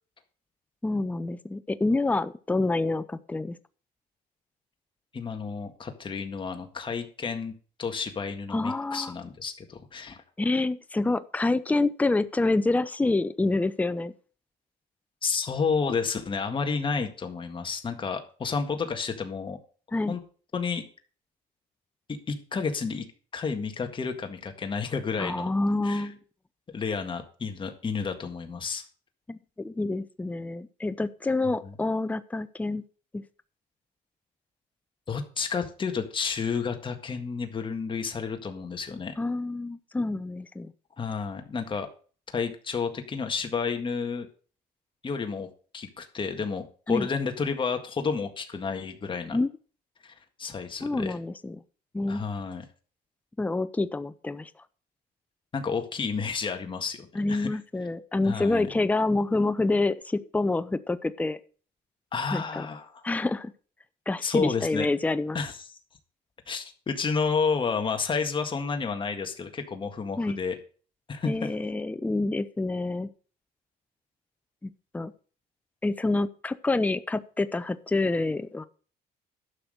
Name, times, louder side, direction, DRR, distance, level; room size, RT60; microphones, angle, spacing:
voice 1, 0.8-3.6 8.5-9.1 10.4-14.1 19.9-20.2 25.2-26.2 29.3-32.8 33.1-33.2 39.2-40.7 46.9-47.1 49.3-49.5 50.8-51.6 51.9-52.2 53.4-54.5 57.1-61.4 62.3-62.7 63.0-63.5 64.1-65.4 70.2-70.4 71.3-73.1 74.6-75.1 75.8-78.7, left 2 dB, 10° left, 13 dB, 0.6 m, -27 dB
voice 2, 5.1-7.5 7.8-10.2 15.2-19.6 20.1-20.2 20.5-20.8 22.1-23.1 23.3-25.5 25.8-26.1 26.7-28.9 31.6-31.7 35.1-39.1 41.0-41.9 42.3-44.3 45.0-45.5 45.7-49.4 50.0-51.1 52.1-52.7 55.5-57.6 58.2-58.7 62.1-63.0 64.2-64.9 65.3-65.8 66.5-70.6 71.1-71.6, left 5 dB, 30° left, 5 dB, 1.8 m, -31 dB
11.5 x 6.0 x 6.6 m, 0.41 s
cardioid pair, 110°, 17 cm